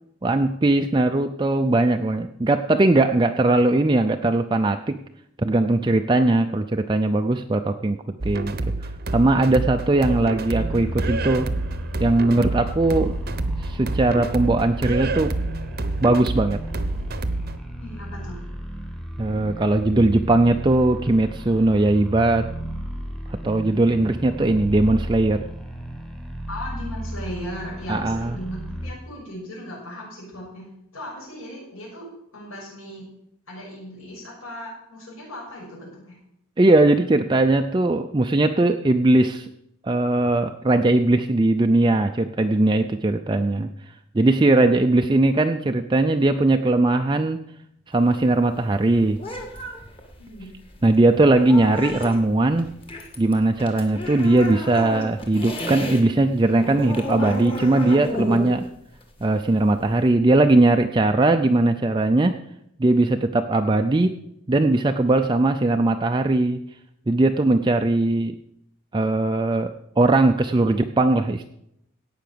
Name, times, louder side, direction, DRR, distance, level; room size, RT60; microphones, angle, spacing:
voice 1, 0.2-5.0 5.4-8.0 8.2-11.5 12.0-13.2 13.6-15.3 16.0-16.6 19.2-22.5 23.3-25.5 27.9-28.4 36.6-39.5 39.8-43.7 44.1-47.4 47.9-49.2 50.8-52.7 53.2-58.7 59.2-62.3 62.8-64.2 64.5-66.6 67.1-68.4 68.9-71.5, right 2 dB, 20° right, 6 dB, 0.4 m, -19 dB
sound 1, 8.2-17.6, right 2 dB, 45° right, 0.8 m, -28 dB
sound 2, 10.6-28.9, equal, ahead, 1.1 m, -33 dB
voice 2, 17.8-18.4 26.5-32.0 32.3-33.0 33.5-36.1 50.2-50.5 67.6-67.8, equal, 70° left, -5 dB, 6.1 m, -37 dB
sound 3, 47.9-56.0 56.3-60.1, left 1 dB, 25° left, 1.8 m, -33 dB
17.0 x 5.9 x 6.8 m, 0.78 s
head